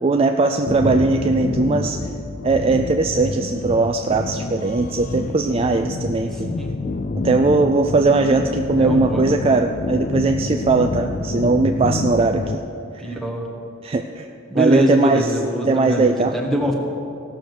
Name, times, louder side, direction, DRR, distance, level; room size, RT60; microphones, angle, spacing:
voice 1, 0.0-2.0 2.4-6.5 7.2-12.6 12.9-13.2 13.8-14.3 14.5-15.3 15.6-16.3, right 3 dB, 30° right, 5 dB, 0.3 m, -19 dB
sound 1, 0.7-12.5, left 3 dB, 40° left, 0.4 m, -27 dB
voice 2, 8.8-9.5 13.0-13.5 14.5-16.7, equal, ahead, 0 dB, 1.4 m, -23 dB
16.5 x 6.5 x 6.7 m, 2.6 s
head